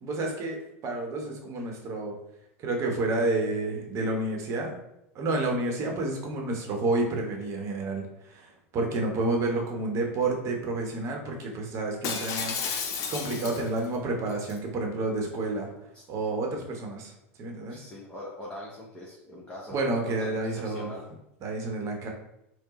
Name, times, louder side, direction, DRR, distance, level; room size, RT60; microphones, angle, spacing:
voice 1, 0.0-2.2 2.6-4.7 5.1-12.7 13.0-15.7 16.1-17.1 17.4-17.8 19.7-20.9 21.4-22.1, right 2 dB, 40° right, 1 dB, 1.0 m, -30 dB
Shatter, 12.0-13.9 14.3-14.6, left 5 dB, 45° left, 0.6 m, -32 dB
voice 2, 17.7-19.8 20.0-21.1, left 1 dB, 15° left, -6 dB, 1.0 m, -42 dB
4.4 x 2.2 x 3.0 m, 0.84 s
hypercardioid pair, 90°, 8 cm